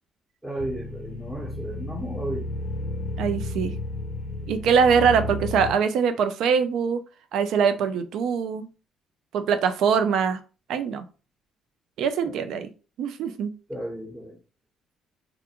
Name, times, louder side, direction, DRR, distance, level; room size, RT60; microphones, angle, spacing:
voice 1, 0.4-2.5 4.4-4.5 12.2-12.3 13.7-14.4, right 1 dB, 15° right, -5 dB, 0.9 m, -34 dB
sound 1, 0.6-5.7, left 2 dB, 65° left, 0.4 m, -32 dB
voice 2, 3.2-3.7 4.5-7.0 7.3-8.7 9.3-10.4 10.7-11.1 12.0-12.7 13.0-13.5, right 6 dB, 75° right, 10 dB, 0.4 m, -23 dB
2.4 x 2.2 x 2.9 m, 0.34 s
supercardioid pair, 70°, 0 cm